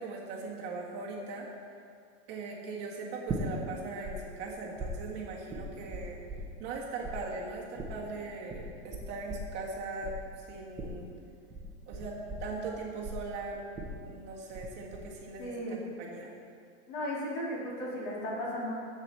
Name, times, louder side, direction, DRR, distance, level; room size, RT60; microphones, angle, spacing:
voice 1, 0.0-1.5 2.3-6.2 6.6-11.1 11.9-13.6 14.1-16.3, right 3 dB, 30° right, -3 dB, 1.6 m, -40 dB
sound 1, 3.3-4.1 4.4-6.8 7.0-14.7 14.9-15.4, right 3 dB, 10° right, 0.9 m, -40 dB
voice 2, 15.4-15.8 16.9-18.7, equal, 40° left, -5 dB, 2.7 m, -35 dB
10.5 x 7.7 x 4.2 m, 2.2 s
supercardioid pair, 165°, 36 cm